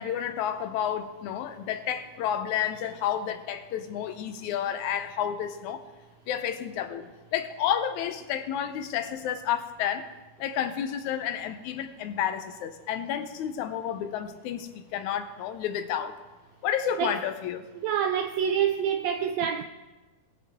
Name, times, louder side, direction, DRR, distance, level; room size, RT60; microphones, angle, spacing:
voice 1, 0.0-5.8 6.3-10.1 10.4-16.1 16.6-17.6, left 9 dB, 80° left, 2.0 m, -30 dB
voice 2, 17.8-19.6, right 8 dB, 85° right, 1.5 m, -26 dB
19.5 x 7.2 x 3.6 m
omnidirectional pair, 3.6 m